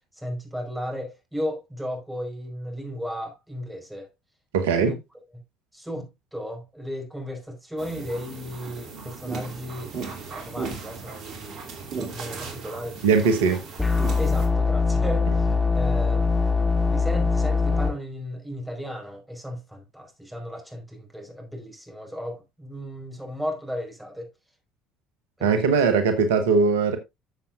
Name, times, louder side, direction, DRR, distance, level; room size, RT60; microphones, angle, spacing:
voice 1, 0.2-4.1 4.8-5.0 5.7-13.2 14.2-16.3 16.9-24.3 25.4-25.8, equal, 5° right, 5.0 m, -35 dB
voice 2, 4.5-4.9 13.0-13.6 25.4-27.0, right 5 dB, 75° right, 1.3 m, -20 dB
sound 1, 7.8-14.5, right 4 dB, 55° right, 2.9 m, -37 dB
sound 2, 13.8-17.9, left 4 dB, 15° left, 2.3 m, -22 dB
13.0 x 7.2 x 2.5 m
figure-of-eight pair, 60°, 0 cm